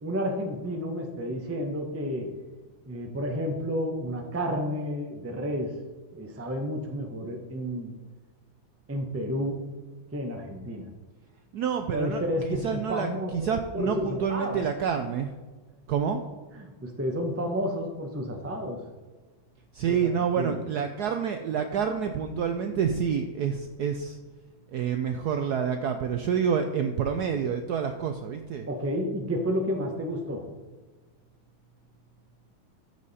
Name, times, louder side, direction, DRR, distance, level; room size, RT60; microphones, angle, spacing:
voice 1, 0.0-2.3 2.9-5.7 6.1-7.9 8.9-9.7 10.1-10.9 11.9-14.7 16.5-18.8 19.9-20.1 20.4-20.6 28.7-30.5, equal, 20° right, 3 dB, 0.4 m, -31 dB
voice 2, 11.5-15.3 15.9-16.2 19.7-24.2 24.7-28.7, right 7 dB, 75° right, 6 dB, 0.9 m, -28 dB
13.5 x 4.9 x 4.2 m, 1.3 s
omnidirectional pair, 2.2 m